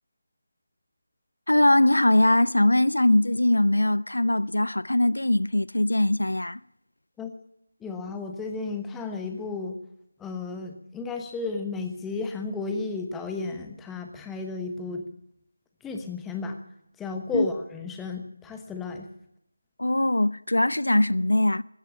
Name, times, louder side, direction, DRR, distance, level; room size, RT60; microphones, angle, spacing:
voice 1, 1.5-6.6 17.3-17.5 19.8-21.6, left 1 dB, 80° left, 0.5 m, -21 dB
voice 2, 7.8-9.8 10.2-15.1 15.8-16.6 17.0-19.1, left 4 dB, 5° left, 1.2 m, -33 dB
16.0 x 13.0 x 7.0 m
figure-of-eight pair, 165°, 0 cm